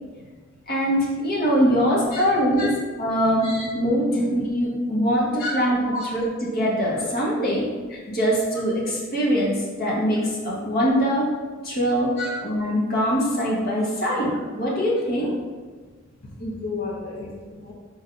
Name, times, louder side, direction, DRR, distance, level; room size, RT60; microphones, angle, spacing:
voice 1, 0.7-2.7 3.0-5.8 6.1-11.3 11.6-12.1 12.4-15.3, equal, 45° left, -4 dB, 1.6 m, -23 dB
voice 2, 16.4-17.7, left 2 dB, 75° left, -7 dB, 1.1 m, -31 dB
5.1 x 4.2 x 4.8 m, 1.5 s
head